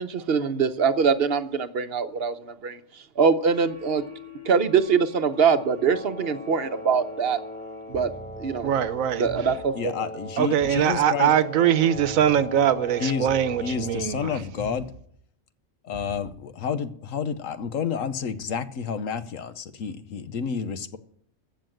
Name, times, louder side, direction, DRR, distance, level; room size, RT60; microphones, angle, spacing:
voice 1, 0.0-2.8 3.2-4.0 4.5-7.4 7.9-8.1 8.4-8.7 9.2-9.9, right 6 dB, 55° right, 0.9 m, -23 dB
sound 1, 3.4-8.3, left 11 dB, 55° left, 3.9 m, -45 dB
Wind instrument woodwind instrument, 5.7-14.1, right 1 dB, 10° left, 0.6 m, -39 dB
sound 2, 7.9-9.8 10.6-11.0 11.9-15.1 15.9-16.3, right 2 dB, 30° right, 0.7 m, -43 dB
voice 2, 8.6-9.3 10.4-14.3, right 9 dB, 90° right, 1.2 m, -22 dB
voice 3, 9.8-11.3 13.0-13.3 13.6-14.9 15.8-21.0, left 6 dB, 80° left, 1.3 m, -30 dB
15.0 x 7.2 x 7.7 m
omnidirectional pair, 1.4 m